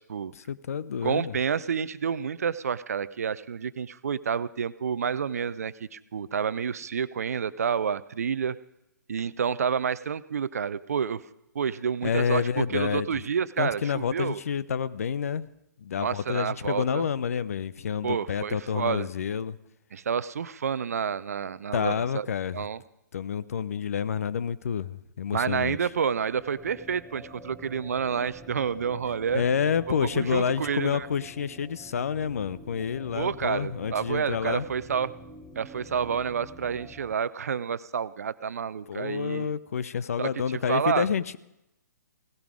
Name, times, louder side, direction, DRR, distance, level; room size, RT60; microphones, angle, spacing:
voice 1, 0.3-1.4 12.0-13.2 13.6-15.5 15.8-19.6 21.7-22.6 23.1-25.8 29.3-34.6 38.9-41.4, left 7 dB, 50° left, 17 dB, 0.7 m, -29 dB
voice 2, 1.0-8.6 9.1-11.2 11.5-14.4 16.0-17.1 18.0-19.1 19.9-22.3 22.5-22.8 25.3-29.4 30.0-31.1 33.1-35.1 35.6-39.5 40.2-40.3 40.7-41.1, right 7 dB, 55° right, 17 dB, 0.6 m, -29 dB
sound 1, 25.7-37.1, right 1 dB, ahead, 1.2 m, -47 dB
17.5 x 15.5 x 4.9 m, 0.85 s
figure-of-eight pair, 125°, 10 cm